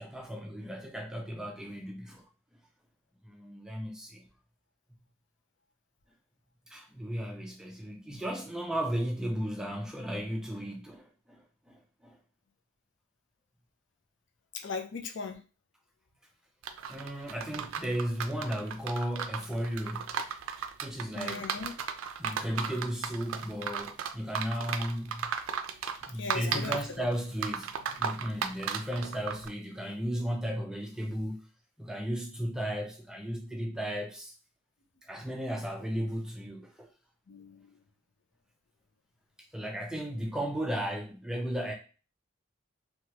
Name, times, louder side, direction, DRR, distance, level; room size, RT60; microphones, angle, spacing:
voice 1, 0.0-2.2 3.2-4.2 6.7-12.2 16.9-20.1 20.8-21.5 22.2-25.3 26.0-27.7 28.0-31.5 31.8-34.3 35.1-36.9 39.5-41.7, equal, 5° right, 0.3 m, -35 dB
voice 2, 14.5-15.4 21.1-21.7 26.2-27.1 37.3-37.8, left 5 dB, 60° left, 0.5 m, -38 dB
sound 1, 16.6-29.5, right 7 dB, 85° right, 0.4 m, -36 dB
3.0 x 2.3 x 2.8 m
head